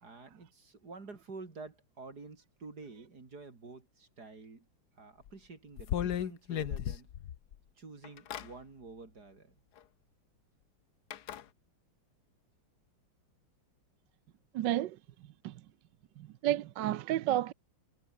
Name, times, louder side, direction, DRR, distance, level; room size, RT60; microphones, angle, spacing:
voice 1, 0.0-4.7 5.0-7.1 7.8-9.6, right 3 dB, 45° right, 3.9 m, -49 dB
sound 1, 5.3-5.4 5.8-7.5 8.0-8.5 9.8-9.9 11.1-11.4, left 10 dB, 55° left, 1.4 m, -35 dB
voice 2, 14.5-15.0 15.4-15.6 16.2-17.5, right 13 dB, 65° right, 1.2 m, -31 dB
omnidirectional pair, 2.3 m